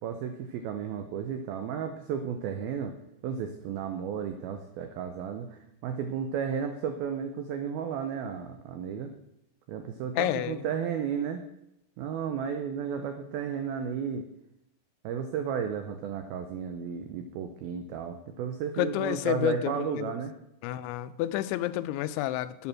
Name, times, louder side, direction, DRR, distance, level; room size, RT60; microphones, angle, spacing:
voice 1, 0.0-3.0 3.2-9.1 9.7-11.4 12.0-14.2 15.0-20.3, right 7 dB, 85° right, 7 dB, 2.1 m, -33 dB
voice 2, 10.2-10.7 18.7-20.2 20.6-22.7, left 14 dB, 85° left, 12 dB, 2.9 m, -30 dB
11.0 x 9.8 x 6.0 m, 0.83 s
omnidirectional pair, 5.4 m